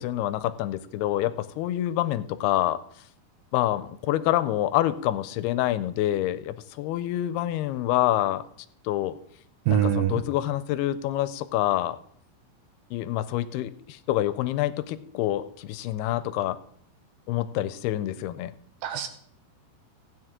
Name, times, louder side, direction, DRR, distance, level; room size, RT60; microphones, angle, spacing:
voice 1, 0.0-2.8 3.5-8.4 8.9-9.2 9.7-12.0 12.9-16.6 17.3-18.5, left 14 dB, 90° left, 14 dB, 2.6 m, -27 dB
voice 2, 9.7-10.1 18.8-19.1, right 11 dB, 80° right, 8 dB, 2.2 m, -23 dB
15.5 x 9.6 x 3.6 m, 0.65 s
omnidirectional pair, 4.5 m